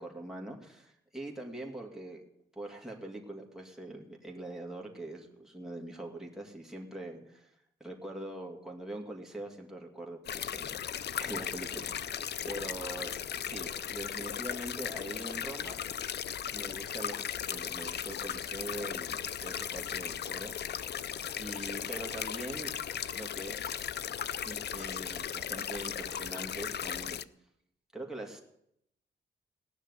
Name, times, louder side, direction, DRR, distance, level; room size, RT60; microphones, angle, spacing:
voice 1, 0.0-2.2 2.6-7.5 7.8-10.8 11.2-15.8 16.5-17.2 17.5-20.5 21.4-22.7 23.1-23.9 24.4-27.2 27.9-28.4, right 1 dB, ahead, -1 dB, 2.4 m, -43 dB
sound 1, 10.2-27.2, left 9 dB, 60° left, 0.5 m, -37 dB
18.0 x 6.4 x 9.9 m, 0.78 s
wide cardioid pair, 130°, 20 cm